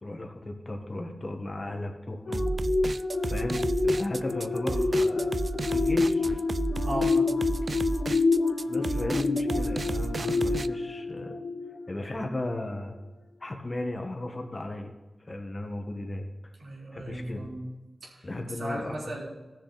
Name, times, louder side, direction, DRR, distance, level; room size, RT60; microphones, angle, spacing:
voice 1, 0.0-2.5 3.2-5.4 5.7-6.3 8.7-11.3 11.9-13.0 13.4-14.9 15.3-16.3 16.9-17.5 18.2-19.2, left 2 dB, 35° left, 3 dB, 1.6 m, -35 dB
sound 1, 2.3-12.1 12.6-12.8, left 3 dB, 75° left, 0.9 m, -28 dB
sound 2, 2.3-10.7, right 3 dB, 50° right, 0.3 m, -32 dB
voice 2, 6.8-7.5 16.6-17.7 18.0-19.3, right 1 dB, 90° right, -4 dB, 3.6 m, -36 dB
15.0 x 6.7 x 4.1 m, 1.2 s
wide cardioid pair, 85°, 0 cm